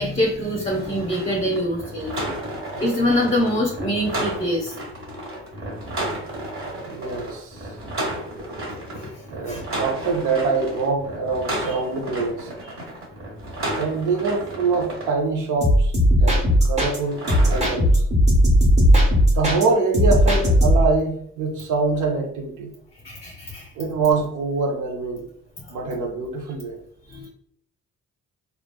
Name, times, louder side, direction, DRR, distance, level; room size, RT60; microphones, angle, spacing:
voice 1, 0.0-2.1 2.8-4.7 9.0-9.6 11.6-11.8 23.0-23.7 25.6-25.7 27.1-27.3, equal, 20° left, -1 dB, 0.6 m, -24 dB
sound 1, 0.7-15.1 17.0-17.6, right 1 dB, 45° right, 1.3 m, -32 dB
voice 2, 6.9-7.7 9.3-12.5 13.8-15.9 16.2-18.0 19.4-22.7 23.8-25.2 25.7-26.8, right 4 dB, 80° right, 2 dB, 0.8 m, -24 dB
sound 2, 15.6-17.0 17.3-19.6 19.9-20.9, equal, 20° right, 1.0 m, -17 dB
3.1 x 2.4 x 2.2 m, 0.68 s
cardioid pair, 90°, 30 cm